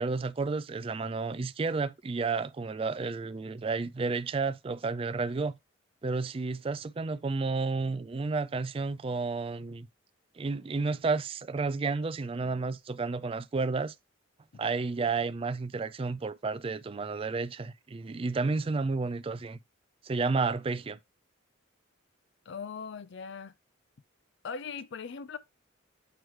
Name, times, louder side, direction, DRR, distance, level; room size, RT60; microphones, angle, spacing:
voice 1, 0.0-5.5 6.0-9.9 10.4-13.9 14.6-19.6 20.0-21.0, right 4 dB, 30° right, 0.3 m, -31 dB
voice 2, 22.5-23.5 24.4-25.4, left 5 dB, 60° left, 0.4 m, -39 dB
7.9 x 3.2 x 4.5 m
head